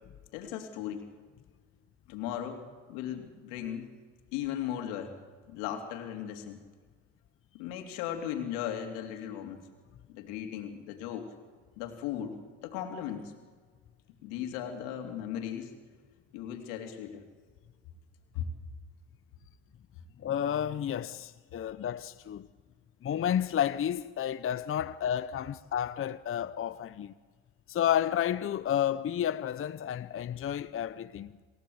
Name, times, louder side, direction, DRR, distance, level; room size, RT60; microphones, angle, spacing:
voice 1, 0.3-1.1 2.1-3.9 4.3-5.1 5.5-6.6 7.5-9.6 10.1-11.3 11.8-13.3 14.2-15.7 16.3-17.2 18.3-18.5, left 10 dB, 80° left, 3.0 m, -37 dB
voice 2, 20.2-22.5 23.0-27.1 27.7-31.3, left 10 dB, 35° left, 0.7 m, -31 dB
28.0 x 16.0 x 7.9 m
supercardioid pair, 70°, 35 cm